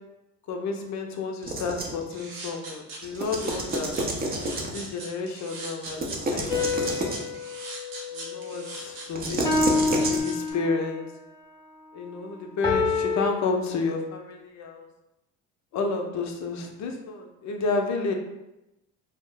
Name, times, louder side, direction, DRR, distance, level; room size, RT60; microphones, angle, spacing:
voice 1, 0.5-3.9 4.7-6.9 7.1-7.3 8.1-11.1 11.9-14.9 15.7-18.1, left 3 dB, 50° left, 3 dB, 0.6 m, -31 dB
sound 1, 1.4-2.1 3.0-4.9 5.8-7.3 9.1-10.2, right 1 dB, 25° right, 0.5 m, -30 dB
sound 2, 2.1-10.5, right 2 dB, 85° right, 0.8 m, -40 dB
sound 3, 6.5-8.9 9.4-11.0 12.6-13.3, left 4 dB, 10° left, 0.6 m, -27 dB
2.3 x 2.0 x 3.6 m, 0.94 s
supercardioid pair, 75°, 36 cm